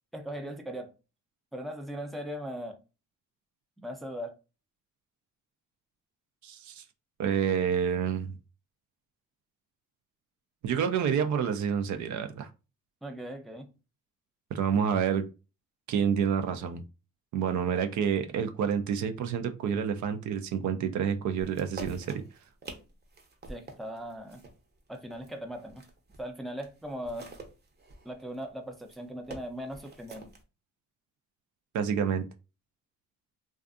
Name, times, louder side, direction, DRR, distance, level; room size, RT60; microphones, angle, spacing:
voice 1, 0.1-0.9 1.5-2.8 3.8-4.4 13.0-13.7 23.5-24.5 24.9-25.9 26.2-27.3 28.0-30.3, equal, ahead, 0.4 m, -39 dB
voice 2, 6.4-6.8 7.2-8.4 10.6-12.5 14.5-15.2 15.9-16.8 17.3-22.2 31.7-32.2, right 7 dB, 70° right, 0.5 m, -28 dB
sound 1, 21.4-26.3 26.6-30.4, right 2 dB, 35° right, 0.7 m, -47 dB
2.5 x 2.3 x 2.4 m
cardioid pair, 90°, 30 cm